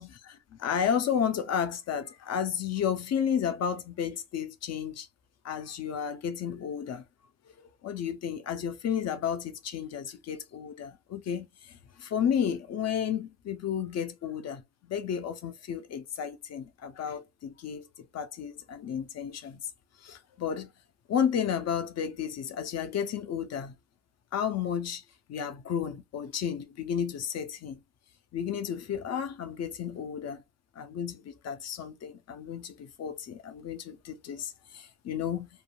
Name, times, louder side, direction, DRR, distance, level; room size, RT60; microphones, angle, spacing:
voice 1, 0.0-5.1 5.4-7.0 7.6-19.7 20.0-20.7 21.1-23.7 24.3-25.0 25.3-27.8 28.3-30.4 30.8-35.5, left 8 dB, 60° left, 0.6 m, -32 dB
3.4 x 2.1 x 2.2 m
cardioid pair, 90°, 30 cm